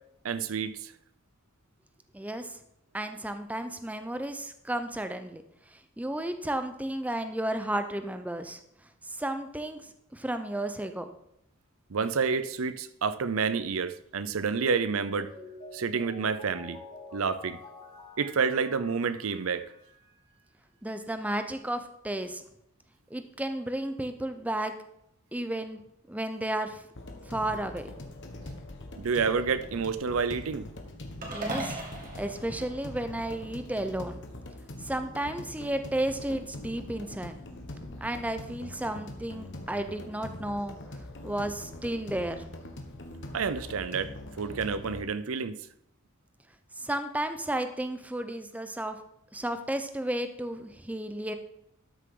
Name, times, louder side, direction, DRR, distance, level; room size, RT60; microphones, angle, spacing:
voice 1, 0.2-0.9 11.9-16.8 17.1-17.6 18.2-19.6 29.0-30.7 43.3-45.6, right 5 dB, 75° right, 13 dB, 0.6 m, -29 dB
voice 2, 2.1-2.6 2.9-5.4 5.7-8.6 9.0-11.1 20.8-22.4 23.1-24.7 25.3-25.8 26.1-26.8 27.2-27.9 31.3-31.8 32.1-34.2 34.8-37.4 38.0-40.8 41.2-42.4 46.8-49.0 49.3-51.3, right 1 dB, 5° right, 8 dB, 0.7 m, -33 dB
Mallet percussion, 15.1-20.1, left 2 dB, 35° left, 2.1 m, -48 dB
sound 1, 26.9-45.0, left 1 dB, 60° left, 1.3 m, -43 dB
sound 2, 31.2-33.5, right 2 dB, 40° right, 2.2 m, -38 dB
12.5 x 6.6 x 3.8 m, 0.78 s
head